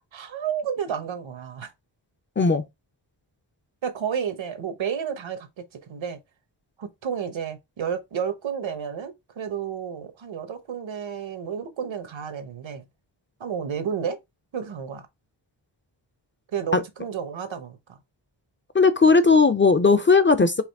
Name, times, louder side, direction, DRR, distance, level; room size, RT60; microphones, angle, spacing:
voice 1, 0.1-1.7 3.8-5.5 5.9-6.2 6.8-12.9 13.4-14.2 14.5-15.1 16.5-18.0, right 7 dB, 80° right, 1.0 m, -31 dB
voice 2, 18.7-20.6, left 4 dB, 30° left, 0.3 m, -17 dB
4.9 x 3.2 x 3.4 m
wide cardioid pair, 145°, 45 cm